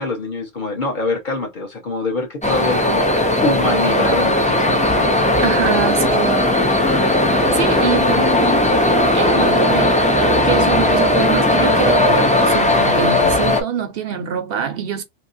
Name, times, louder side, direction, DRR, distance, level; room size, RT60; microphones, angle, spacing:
voice 1, 0.0-5.2, left 2 dB, 45° left, 1.1 m, -25 dB
sound 1, 2.4-13.6, left 1 dB, 15° left, 0.3 m, -16 dB
voice 2, 5.4-6.4 7.5-8.8 9.1-10.0 10.4-15.0, right 8 dB, 65° right, 0.8 m, -24 dB
3.0 x 2.8 x 2.5 m
omnidirectional pair, 1.1 m